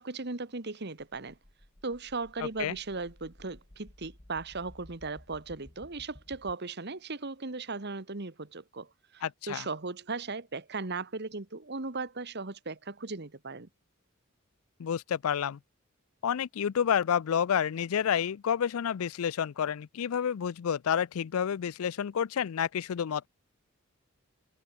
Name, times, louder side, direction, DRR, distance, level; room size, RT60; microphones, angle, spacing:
voice 1, 0.0-1.4 1.8-13.7, right 3 dB, 50° right, 1.5 m, -37 dB
sound 1, 1.0-6.6, left 1 dB, 30° left, 1.9 m, -55 dB
voice 2, 9.2-9.7 14.8-15.6 16.2-23.3, left 8 dB, 75° left, 0.4 m, -29 dB
head